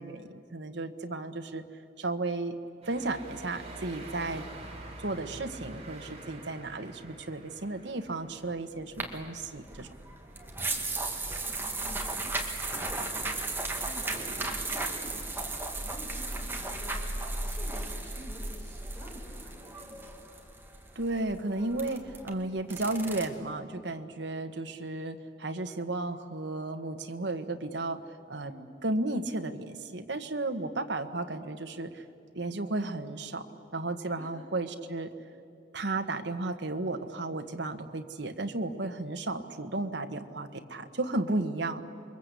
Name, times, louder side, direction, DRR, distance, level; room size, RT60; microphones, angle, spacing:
voice 1, 0.0-1.6 2.0-2.6 2.9-4.4 5.0-9.9 20.9-28.0 28.3-28.5 28.8-32.0 32.3-33.4 33.7-35.1 35.7-41.8, right 2 dB, 65° right, 6 dB, 1.4 m, -34 dB
sound 1, 2.8-15.9, right 1 dB, 35° right, 3.5 m, -49 dB
sound 2, 9.0-23.2, right 2 dB, 10° right, 2.1 m, -35 dB
voice 2, 11.1-12.3 12.8-15.5 15.8-20.0 28.4-28.7 34.2-34.4, equal, 10° left, -4 dB, 7.0 m, -49 dB
28.5 x 23.0 x 8.3 m, 2.7 s
head